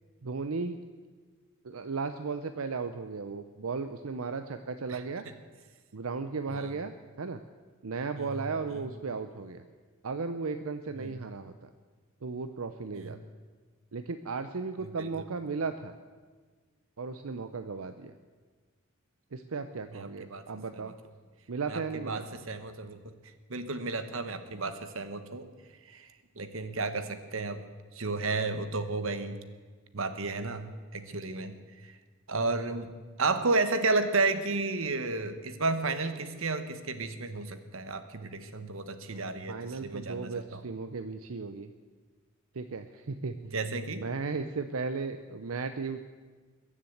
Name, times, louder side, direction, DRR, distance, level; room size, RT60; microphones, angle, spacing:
voice 1, 0.2-0.8 1.6-5.3 5.9-7.4 7.8-9.6 10.0-11.7 12.2-13.2 13.9-15.9 17.0-18.1 19.3-21.0 21.5-22.2 39.1-39.2 39.5-41.7 42.5-43.4 43.9-46.0, right 4 dB, 90° right, 9 dB, 0.7 m, -35 dB
voice 2, 8.2-8.8 11.0-11.2 12.9-13.1 15.0-15.1 19.9-20.4 20.7-20.9 21.7-23.0 23.5-25.5 25.8-26.1 26.4-27.6 27.9-29.4 29.9-32.0 32.3-32.9 33.2-40.6 43.5-44.0, right 3 dB, 70° right, 10 dB, 1.2 m, -32 dB
22.0 x 7.4 x 7.9 m, 1.4 s
head